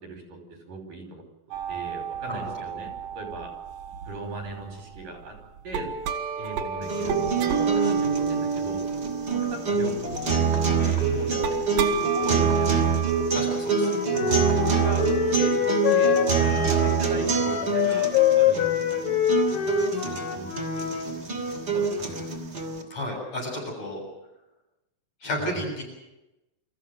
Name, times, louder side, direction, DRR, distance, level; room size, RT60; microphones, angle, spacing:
voice 1, 0.0-1.2 1.7-3.5 4.1-5.4 5.6-5.9 6.4-8.8 9.3-11.5 11.8-13.0 14.1-16.2 16.7-19.2 19.6-21.2 21.7-22.3 25.4-25.6, right 2 dB, 70° right, 5 dB, 6.6 m, -39 dB
sound 1, 1.5-5.0 5.4-13.3, right 6 dB, 85° right, 3.4 m, -31 dB
sound 2, 6.8-22.8, right 5 dB, 30° right, 3.2 m, -26 dB
voice 2, 11.0-11.3 13.3-13.9 16.4-16.7 22.9-24.0 25.2-25.8, left 1 dB, 45° left, 0 dB, 8.7 m, -32 dB
Wind instrument woodwind instrument, 13.7-21.1, left 10 dB, 85° left, 5.3 m, -25 dB
25.5 x 14.5 x 9.3 m, 0.95 s
omnidirectional pair, 4.0 m